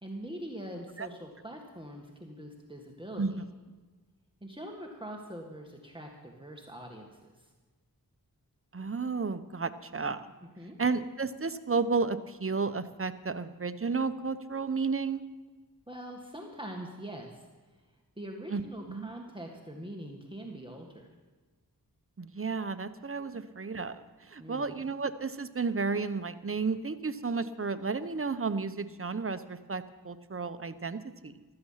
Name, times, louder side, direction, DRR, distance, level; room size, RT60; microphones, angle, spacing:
voice 1, 0.0-3.4 4.4-7.5 10.6-10.8 15.9-17.5 18.2-21.1 23.3-23.4 24.4-24.8, right 1 dB, 15° right, 1 dB, 1.9 m, -43 dB
voice 2, 8.7-10.3 10.8-15.2 18.5-18.6 18.9-19.1 22.2-31.4, right 4 dB, 35° right, 11 dB, 0.9 m, -32 dB
15.5 x 12.5 x 5.8 m, 1.3 s
cardioid pair, 40°, 38 cm